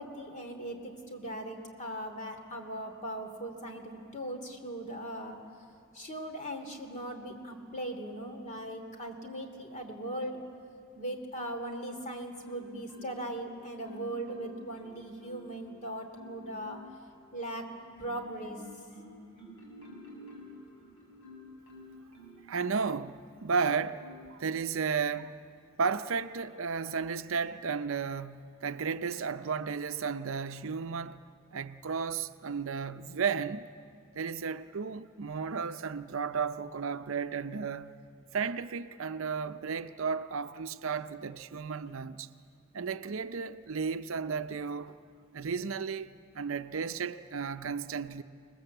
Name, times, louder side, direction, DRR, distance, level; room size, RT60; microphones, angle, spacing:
voice 1, 0.0-5.4 5.9-10.4 11.0-16.8 17.3-17.7 18.0-18.6, right 1 dB, 35° left, 2.8 m, -39 dB
Marimba xylophone, 12.4-13.4 13.8-15.7 16.1-17.0 17.6-23.0 23.5-24.4 24.9-25.2, left 1 dB, 65° left, 7.1 m, -51 dB
voice 2, 22.5-25.4 25.8-31.2 31.5-33.7 34.1-38.0 38.3-42.3 42.7-44.9 45.3-48.2, right 5 dB, 65° right, 0.6 m, -33 dB
27.0 x 20.0 x 7.9 m
head